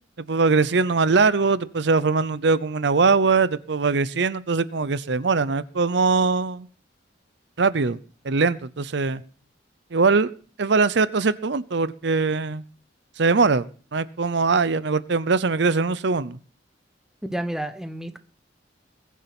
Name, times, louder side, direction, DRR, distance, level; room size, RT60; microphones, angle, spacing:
voice 1, 0.2-6.7 7.6-8.0 8.2-9.2 9.9-10.3 10.6-12.6 13.2-16.4, right 4 dB, 70° right, 16 dB, 0.7 m, -21 dB
voice 2, 17.2-18.2, right 1 dB, 5° right, 9 dB, 1.1 m, -30 dB
21.5 x 7.4 x 6.0 m, 0.41 s
head